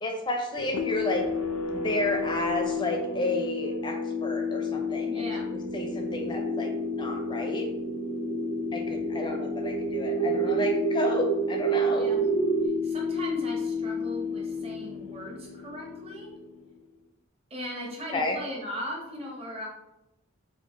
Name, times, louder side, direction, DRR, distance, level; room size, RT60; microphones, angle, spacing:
voice 1, 0.0-1.2 1.7-6.7 7.0-7.7 8.7-12.1 18.1-18.4, left 1 dB, 20° left, 3 dB, 0.5 m, -31 dB
sound 1, 0.6-16.9, left 5 dB, 85° left, 0.4 m, -32 dB
voice 2, 5.1-5.5 11.9-12.2 12.8-16.3 17.5-19.7, equal, 30° right, -1 dB, 0.9 m, -38 dB
sound 2, 5.7-12.7, right 7 dB, 85° right, 0.6 m, -30 dB
4.7 x 2.5 x 3.8 m, 0.91 s
head